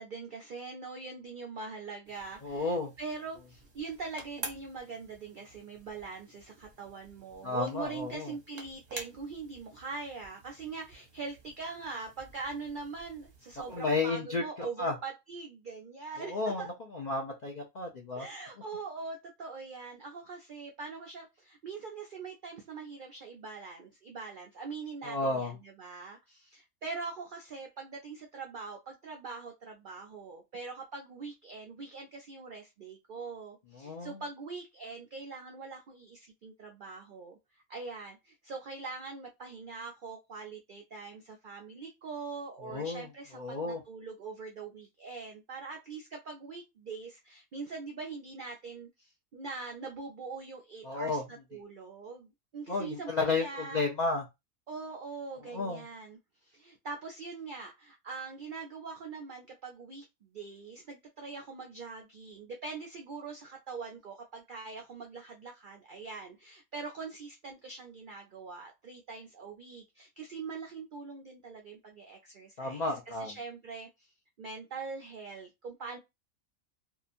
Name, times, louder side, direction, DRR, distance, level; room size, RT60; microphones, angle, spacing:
voice 1, 0.0-16.7 18.1-51.2 51.5-53.8 54.7-56.2 56.4-74.1 74.4-76.0, right 4 dB, 70° right, 2 dB, 0.4 m, -43 dB
sound 1, 2.0-14.0, right 3 dB, 40° right, 0.7 m, -50 dB
voice 2, 2.4-2.9 7.4-8.3 13.7-14.4 14.8-14.9 16.2-16.7 16.9-18.3 25.0-25.5 33.7-34.2 42.6-43.1 43.3-43.8 50.8-51.2 52.7-54.3 55.5-55.8 72.6-73.3, left 3 dB, 60° left, 0 dB, 0.4 m, -32 dB
2.8 x 2.3 x 2.5 m, 0.22 s
omnidirectional pair, 1.4 m